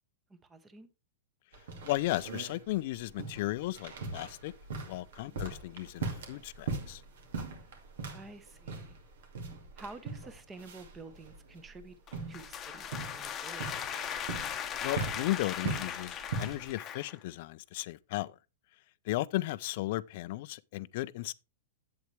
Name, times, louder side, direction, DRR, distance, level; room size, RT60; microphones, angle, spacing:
voice 1, 0.3-0.9 5.2-5.4 8.1-9.0 9.8-12.0 12.3-13.8, right 3 dB, 15° right, 1.0 m, -50 dB
sound 1, 1.5-16.7, right 4 dB, 70° right, 2.4 m, -41 dB
voice 2, 1.8-4.5 4.9-7.0 14.8-18.3 19.1-21.3, left 17 dB, 55° left, 0.4 m, -35 dB
sound 2, 12.1-17.2, left 9 dB, 25° left, 0.9 m, -38 dB
8.0 x 7.9 x 3.3 m
hypercardioid pair, 140°, 0 cm